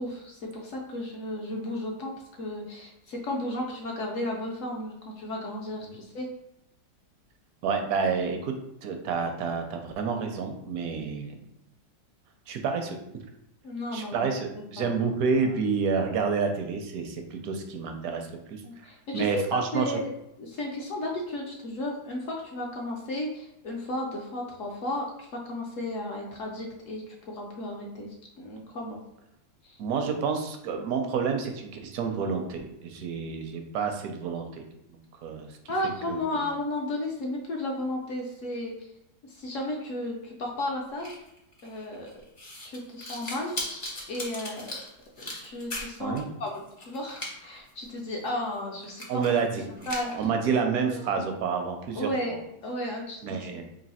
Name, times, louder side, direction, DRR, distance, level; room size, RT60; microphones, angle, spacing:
voice 1, 0.0-2.1 2.4-6.3 13.6-14.3 14.8-15.0 15.4-15.5 18.6-20.0 20.4-29.0 29.6-29.8 35.7-38.7 39.2-41.1 41.6-42.1 42.6-43.5 44.1-44.8 45.2-46.1 46.4-49.2 49.9-50.3 50.9-51.2 52.0-53.6, left 1 dB, 70° left, 0 dB, 0.8 m, -34 dB
voice 2, 7.6-8.5 8.8-11.4 12.5-13.0 13.9-18.6 19.1-19.9 29.8-35.5 36.1-36.2 46.0-46.3 49.1-49.6 50.1-52.4 53.2-53.6, right 5 dB, 70° right, 4 dB, 0.8 m, -29 dB
sound 1, 41.0-46.2 46.5-47.3 47.7-47.8 48.3-48.4 48.8-49.5 49.8-50.2, left 1 dB, 35° left, 0.5 m, -38 dB
3.1 x 2.6 x 4.1 m, 0.84 s
omnidirectional pair, 1.9 m